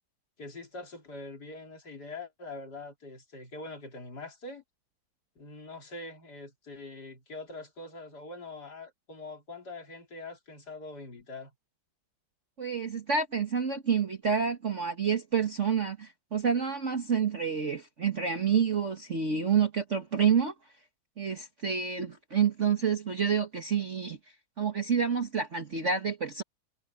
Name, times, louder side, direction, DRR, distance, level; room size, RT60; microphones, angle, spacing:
voice 1, 0.4-4.6 5.4-11.5, left 2 dB, 50° left, 3.9 m, -43 dB
voice 2, 12.6-20.5 21.2-24.2 24.6-26.4, right 6 dB, 40° right, 1.7 m, -28 dB
omnidirectional pair, 2.2 m